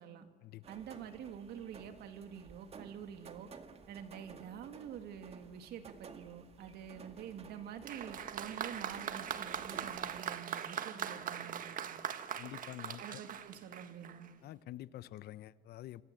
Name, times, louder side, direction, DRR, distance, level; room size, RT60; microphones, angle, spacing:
sound 1, 0.6-10.2, right 5 dB, 35° right, 2.1 m, -55 dB
voice 1, 0.7-3.5 3.9-12.0 13.0-14.3, right 8 dB, 75° right, 2.6 m, -47 dB
Applause, 7.8-14.3, right 8 dB, 55° right, 1.6 m, -41 dB
voice 2, 12.4-13.2 14.4-16.0, left 14 dB, 70° left, 0.9 m, -47 dB
27.0 x 24.5 x 7.9 m
cardioid pair, 110°, 17 cm